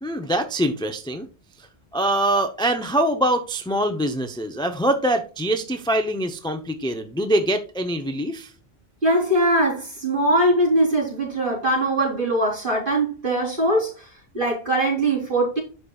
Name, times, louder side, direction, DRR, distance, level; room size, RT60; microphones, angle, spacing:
voice 1, 0.0-1.3 1.9-8.5, right 1 dB, 5° left, 6 dB, 0.6 m, -24 dB
voice 2, 9.0-14.1 14.3-15.6, right 1 dB, 50° right, -2 dB, 4.1 m, -21 dB
12.0 x 5.2 x 2.4 m, 0.33 s
omnidirectional pair, 1.1 m